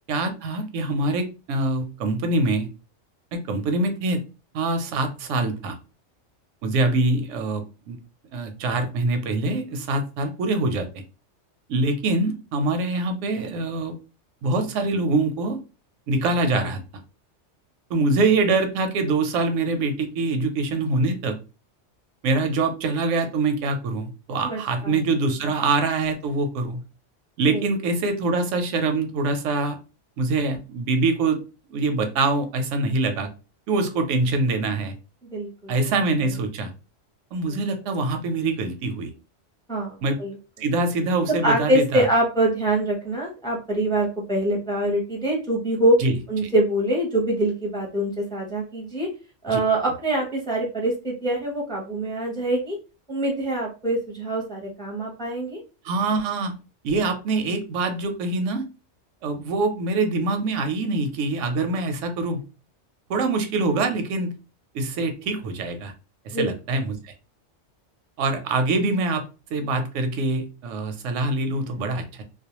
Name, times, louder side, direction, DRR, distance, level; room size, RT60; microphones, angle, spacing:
voice 1, 0.1-2.7 3.3-4.2 4.5-5.8 6.6-8.0 8.3-10.9 11.7-13.9 14.4-15.6 16.1-16.8 17.9-21.4 22.2-26.8 27.4-29.8 30.2-31.4 31.7-33.3 33.7-35.0 35.7-36.7 37.3-39.1 40.0-40.2 40.6-42.0 46.0-46.5 49.5-49.6 55.8-56.5 56.8-58.7 59.2-62.4 63.1-64.3 64.7-65.9 66.3-67.1 68.2-69.2 69.5-72.2, right 3 dB, 90° right, 7 dB, 0.9 m, -24 dB
voice 2, 24.4-25.0 27.5-27.6 35.3-35.7 37.5-37.6 39.7-40.3 41.2-46.0 46.3-49.1 49.4-52.8 53.1-55.6 66.3-66.5, right 1 dB, 5° left, -1 dB, 0.5 m, -24 dB
2.3 x 2.1 x 2.8 m, 0.32 s
omnidirectional pair, 1.2 m